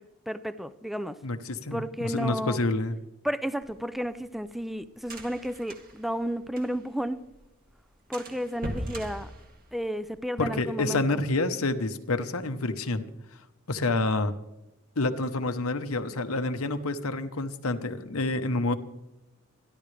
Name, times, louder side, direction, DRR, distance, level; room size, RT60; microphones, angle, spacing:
voice 1, 0.0-1.2 1.7-2.6 3.2-7.2 8.1-9.3 9.7-11.2, equal, ahead, 0.4 m, -32 dB
voice 2, 1.2-3.0 10.4-13.0 13.3-13.4 13.7-14.3 15.0-18.7, left 2 dB, 90° left, 1.1 m, -28 dB
sound 1, 3.6-7.0 7.3-7.4 7.7-7.8 8.1-10.2, equal, 45° right, 2.2 m, -40 dB
25.5 x 11.0 x 3.4 m
head